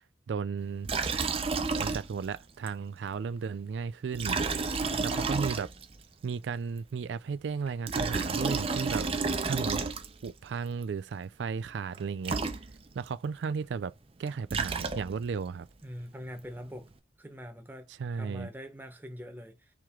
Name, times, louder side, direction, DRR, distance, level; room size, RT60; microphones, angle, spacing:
voice 1, 0.3-0.9 1.8-5.7 6.2-9.1 9.4-9.8 10.2-12.4 12.9-13.9 14.2-15.7 17.9-18.5, right 5 dB, 90° right, 0.3 m, -34 dB
Liquid, 0.8-2.4 2.7-2.8 4.1-6.0 7.7-10.3 11.9-12.0 12.2-13.1 14.2-15.3, right 4 dB, 35° right, 0.6 m, -31 dB
voice 2, 4.7-5.3 15.8-16.9 17.2-19.7, equal, 10° right, 1.0 m, -44 dB
4.5 x 3.1 x 3.6 m
head